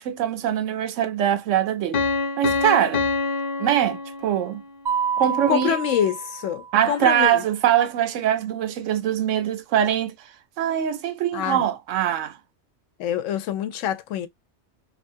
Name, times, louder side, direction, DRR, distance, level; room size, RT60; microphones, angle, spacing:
voice 1, 0.0-2.0 2.4-3.1 3.6-4.6 5.2-5.8 6.7-10.1 10.6-12.4, right 10 dB, 85° right, 1.0 m, -22 dB
Piano, 1.9-4.7, left 4 dB, 55° left, 0.7 m, -26 dB
Mallet percussion, 4.9-6.9, right 7 dB, 30° right, 0.5 m, -28 dB
voice 2, 5.5-7.4 11.3-11.6 13.0-14.3, left 10 dB, 85° left, 0.9 m, -25 dB
2.7 x 2.3 x 2.6 m
omnidirectional pair, 1.3 m